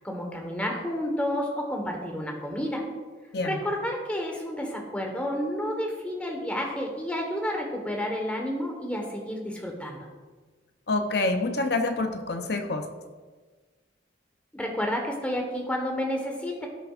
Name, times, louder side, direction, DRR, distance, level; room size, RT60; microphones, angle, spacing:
voice 1, 0.0-2.8 3.4-10.0 14.5-16.7, equal, 5° left, 1 dB, 1.3 m, -30 dB
voice 2, 10.9-12.9, left 2 dB, 60° left, 6 dB, 0.7 m, -27 dB
16.0 x 6.1 x 2.5 m, 1.4 s
head